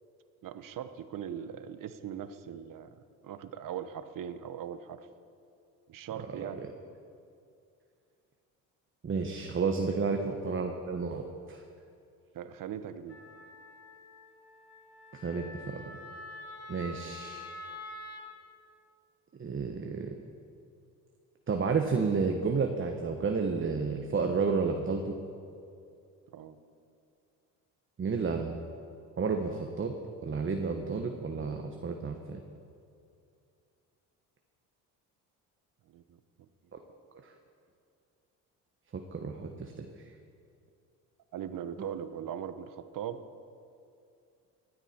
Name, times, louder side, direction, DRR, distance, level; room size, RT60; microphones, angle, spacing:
voice 1, 0.4-2.9 3.2-5.1 5.9-6.6 12.3-13.2 26.3-26.6 35.9-36.2 39.8-39.9 41.3-43.2, right 9 dB, 55° right, 11 dB, 1.1 m, -40 dB
voice 2, 6.4-6.7 9.0-11.6 15.1-16.0 16.7-17.5 19.4-20.1 21.5-25.2 28.0-28.5 29.2-29.9 30.2-32.4 36.7-36.8 37.2-37.3 38.9-39.9 41.8-41.9, right 5 dB, 30° right, 4 dB, 1.2 m, -31 dB
Wind instrument woodwind instrument, 13.1-18.3, left 2 dB, 35° left, 2.8 m, -46 dB
18.0 x 12.0 x 4.4 m, 2.5 s
supercardioid pair, 70°, 40 cm